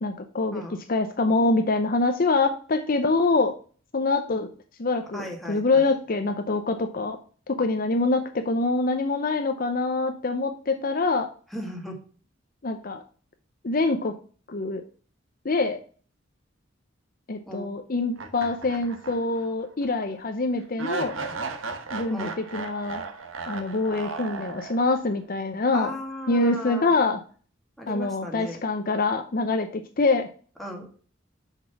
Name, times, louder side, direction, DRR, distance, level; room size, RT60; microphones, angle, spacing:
voice 1, 0.0-0.6 0.9-3.5 3.9-4.5 4.8-7.2 7.6-11.3 12.6-13.0 13.6-14.1 14.5-14.8 15.4-15.8 17.3-21.2 21.9-23.0 23.5-26.0 26.3-27.2 27.9-29.7 30.0-30.3, left 3 dB, 45° left, 7 dB, 0.6 m, -25 dB
voice 2, 5.1-5.9 11.5-12.0 17.5-17.7 22.1-22.4 25.7-26.9 27.8-28.6 30.6-31.0, equal, ahead, 0 dB, 1.8 m, -36 dB
sound 1, 18.2-19.5 19.8-19.9 20.8-25.1, right 4 dB, 90° right, 1.3 m, -35 dB
6.2 x 5.4 x 6.0 m, 0.42 s
head